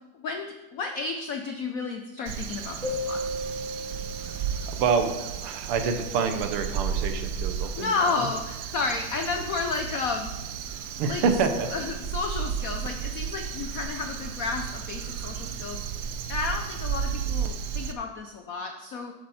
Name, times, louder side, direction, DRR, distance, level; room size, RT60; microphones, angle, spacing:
voice 1, 0.1-3.2 7.8-10.3 11.1-11.2 11.7-15.8 16.3-19.1, left 4 dB, 85° left, 4 dB, 0.7 m, -31 dB
Crow, 2.3-17.9, right 8 dB, 70° right, 1.0 m, -33 dB
sound 1, 2.8-5.1, left 1 dB, 35° right, 3.5 m, -34 dB
voice 2, 4.7-5.1 5.4-8.3 11.0-11.7, right 5 dB, 90° right, 7 dB, 1.9 m, -27 dB
11.0 x 7.6 x 4.1 m, 1.1 s
omnidirectional pair, 2.4 m